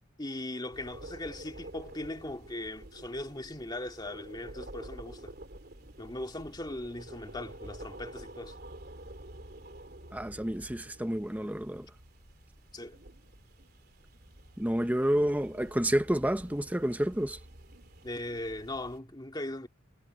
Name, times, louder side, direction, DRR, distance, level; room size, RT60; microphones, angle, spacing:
voice 1, 0.2-5.3 6.0-8.6 12.7-13.0 18.0-19.7, left 1 dB, 20° left, 2.3 m, -39 dB
sound 1, 0.7-19.0, right 1 dB, 50° right, 3.2 m, -49 dB
voice 2, 10.1-11.8 14.6-17.4, right 1 dB, 10° right, 0.9 m, -29 dB
head